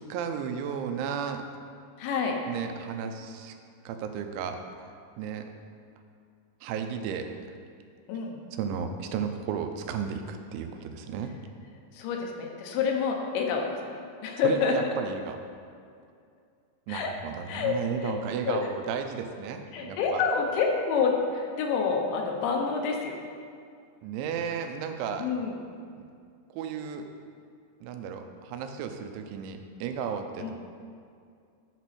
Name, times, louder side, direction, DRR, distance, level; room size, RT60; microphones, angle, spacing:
voice 1, 0.0-1.4 2.5-3.6 3.9-4.6 5.2-5.5 6.6-7.5 8.5-11.4 14.4-15.4 16.9-20.2 24.0-25.3 26.0-26.1 26.5-27.1 27.8-30.5, right 7 dB, 90° right, 6 dB, 3.1 m, -34 dB
voice 2, 2.0-2.4 8.1-8.4 11.9-14.7 16.9-17.1 17.5-18.1 18.5-18.7 19.7-23.2 25.2-25.5 30.4-30.5, left 5 dB, 80° left, 1 dB, 3.2 m, -28 dB
11.5 x 6.2 x 4.2 m, 2.3 s
omnidirectional pair, 5.2 m